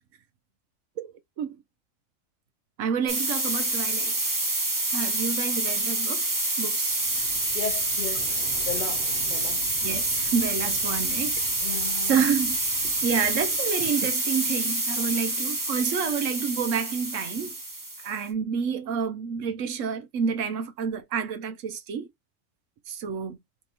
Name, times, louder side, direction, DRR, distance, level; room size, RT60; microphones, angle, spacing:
voice 1, 2.8-4.1 4.9-6.2 6.6-7.0 9.8-11.4 12.1-12.6 12.8-17.5 18.0-22.1 22.9-23.4, right 6 dB, 70° right, 1.0 m, -29 dB
sound 1, 3.1-18.2, right 2 dB, 15° right, 0.8 m, -27 dB
sound 2, 6.9-13.9, right 2 dB, 50° right, 1.1 m, -46 dB
voice 2, 7.5-8.3 8.6-9.7 11.6-12.2, left 5 dB, 55° left, 0.5 m, -35 dB
3.4 x 2.9 x 4.1 m
omnidirectional pair, 1.4 m